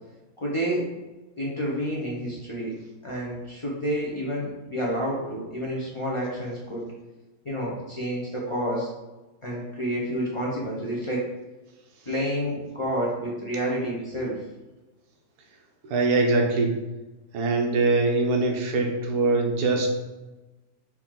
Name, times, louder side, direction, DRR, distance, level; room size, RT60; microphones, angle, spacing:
voice 1, 0.4-0.9 1.4-2.7 3.0-6.8 7.4-8.9 9.4-11.3 12.1-14.4, equal, 30° left, -5 dB, 0.6 m, -29 dB
voice 2, 15.8-16.8 17.3-19.9, right 3 dB, 90° right, 2 dB, 1.3 m, -23 dB
4.6 x 2.9 x 3.7 m, 1.1 s
omnidirectional pair, 1.6 m